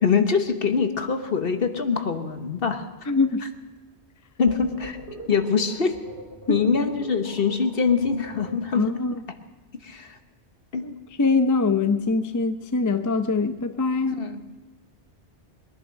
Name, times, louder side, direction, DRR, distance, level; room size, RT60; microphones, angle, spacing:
voice 1, 0.0-2.9 4.4-5.0 5.3-6.0 6.5-8.9 9.8-10.2 10.7-10.9 14.1-14.4, left 5 dB, 55° left, 7 dB, 1.3 m, -23 dB
voice 2, 3.1-3.4 6.5-6.6 8.7-9.1 10.8-10.9 11.2-14.2, left 4 dB, 20° left, 9 dB, 0.5 m, -23 dB
sound 1, 4.5-8.9, right 2 dB, 70° right, 3.6 m, -41 dB
22.0 x 10.5 x 6.3 m, 1.2 s
omnidirectional pair, 1.2 m